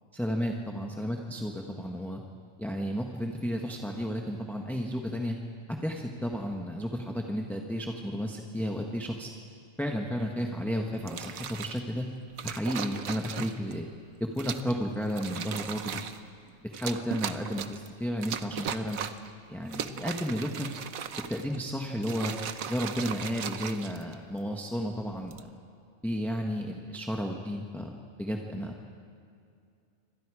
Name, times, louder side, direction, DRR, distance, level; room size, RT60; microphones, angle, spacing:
voice 1, 0.1-2.2 2.6-5.4 5.7-9.3 9.8-12.1 12.4-13.9 14.3-16.0 16.6-19.0 19.5-20.7 21.3-22.3 22.7-25.5 26.0-28.7, equal, ahead, 1 dB, 1.4 m, -32 dB
sound 1, 11.0-11.8 12.4-13.7 14.4-14.8 15.1-16.2 16.7-17.9 18.2-19.3 19.7-21.6 22.0-24.4 25.1-25.5, right 8 dB, 80° right, 1.3 m, -37 dB
27.5 x 25.0 x 5.0 m, 2.4 s
omnidirectional pair, 1.4 m